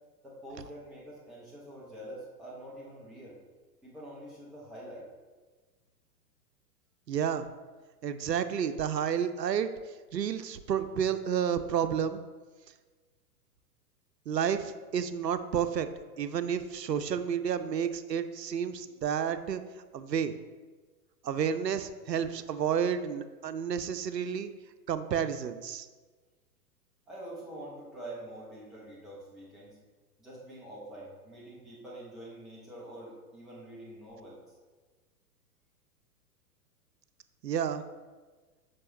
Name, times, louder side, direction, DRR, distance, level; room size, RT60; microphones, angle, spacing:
voice 1, 0.2-3.4 3.8-5.0 27.1-29.8 30.2-34.6, right 1 dB, ahead, -6 dB, 0.3 m, -46 dB
voice 2, 7.1-7.5 8.0-9.7 10.1-12.2 14.3-15.9 16.2-19.6 19.9-20.3 21.2-24.5 24.9-25.9 37.4-37.8, right 8 dB, 85° right, 11 dB, 0.6 m, -30 dB
7.6 x 5.9 x 3.0 m, 1.4 s
figure-of-eight pair, 105°, 48 cm